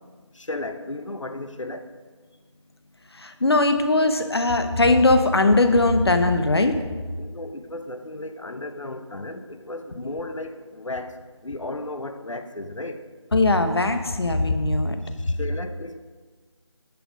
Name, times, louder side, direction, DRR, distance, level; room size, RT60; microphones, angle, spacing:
voice 1, 0.3-1.9 7.2-11.2 11.4-13.0 15.2-16.0, left 2 dB, 90° left, 9 dB, 0.9 m, -34 dB
voice 2, 3.1-6.8 13.3-15.0 15.3-15.4, left 2 dB, 55° left, 8 dB, 0.9 m, -20 dB
10.5 x 5.9 x 5.1 m, 1.5 s
figure-of-eight pair, 170°, 16 cm